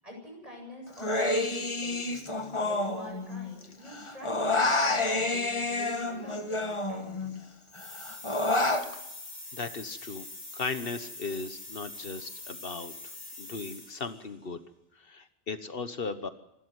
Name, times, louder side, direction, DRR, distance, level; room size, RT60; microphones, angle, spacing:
voice 1, 0.0-7.3, equal, 35° right, 0 dB, 8.3 m, -46 dB
Human voice, 1.0-3.6 3.9-7.4 7.8-8.9, left 2 dB, 30° left, 1.5 m, -29 dB
sound 1, 7.7-14.2, left 2 dB, 45° left, 8.1 m, -44 dB
voice 2, 9.5-10.3 10.5-14.6 14.9-16.3, left 4 dB, 65° left, 10 dB, 1.4 m, -37 dB
26.0 x 13.0 x 9.5 m, 0.87 s
omnidirectional pair, 1.0 m